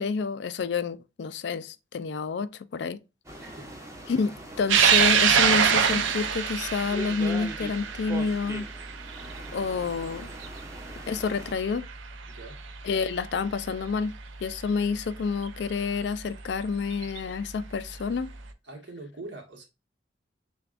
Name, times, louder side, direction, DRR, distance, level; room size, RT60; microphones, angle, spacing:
voice 1, 0.0-3.0 4.1-8.7 9.5-10.3 11.1-11.9 12.8-14.1 14.4-18.3, left 5 dB, 65° left, 0.4 m, -29 dB
sound 1, 3.2-11.5, right 1 dB, 15° right, 0.8 m, -42 dB
voice 2, 3.4-3.8 12.3-12.6 18.6-19.6, right 2 dB, 70° right, 1.3 m, -43 dB
sound 2, 4.7-11.4 11.8-11.9 13.2-13.3 15.4-15.5 16.9-17.2, right 7 dB, 85° right, 0.6 m, -24 dB
6.7 x 2.3 x 2.4 m
head